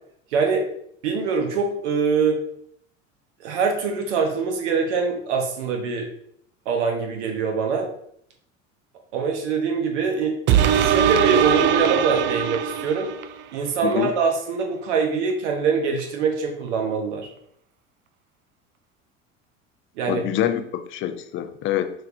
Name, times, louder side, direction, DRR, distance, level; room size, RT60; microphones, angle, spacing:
voice 1, 0.3-0.6 1.0-2.4 3.4-6.1 6.6-7.9 9.1-10.3 10.8-13.1 13.5-17.3 20.0-20.2, right 5 dB, 60° right, 3 dB, 1.1 m, -23 dB
sound 1, 10.5-13.4 13.9-14.0, right 9 dB, 30° right, 0.4 m, -20 dB
voice 2, 20.1-21.9, left 11 dB, 30° left, 9 dB, 0.5 m, -25 dB
6.1 x 3.2 x 2.6 m, 0.68 s
figure-of-eight pair, 70°, 38 cm